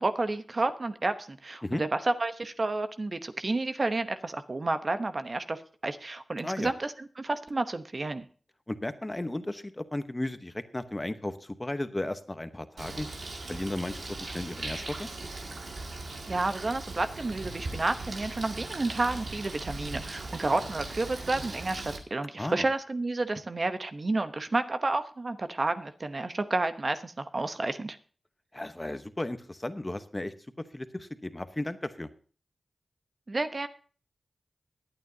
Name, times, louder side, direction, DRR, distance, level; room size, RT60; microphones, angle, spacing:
voice 1, 0.0-8.3 16.3-28.0 33.3-33.7, right 2 dB, 45° right, 9 dB, 0.9 m, -30 dB
voice 2, 8.7-13.1 13.5-15.1 22.4-22.7 28.5-30.3 30.7-32.1, left 1 dB, 20° left, 10 dB, 1.0 m, -35 dB
Bird, 12.8-22.0, right 2 dB, 75° right, 2.2 m, -39 dB
21.5 x 8.9 x 2.8 m, 0.41 s
cardioid pair, 50°, 0 cm